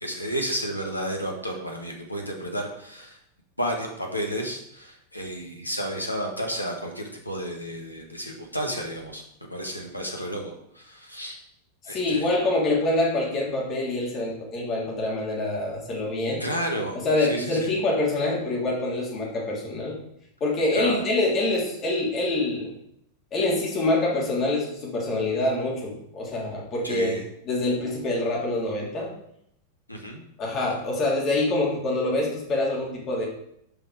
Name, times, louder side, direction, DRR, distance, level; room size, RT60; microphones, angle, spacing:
voice 1, 0.0-3.2 3.6-9.2 9.5-11.4 11.9-12.3 16.4-17.7 20.7-21.0 26.8-27.2 29.9-30.2, equal, 85° left, 1 dB, 1.4 m, -32 dB
voice 2, 11.8-16.4 16.9-20.0 20.4-22.7 23.3-27.2 27.4-29.1 30.4-33.2, left 2 dB, 30° left, -4 dB, 3.1 m, -25 dB
7.2 x 5.5 x 4.9 m, 0.74 s
figure-of-eight pair, 90°, 0 cm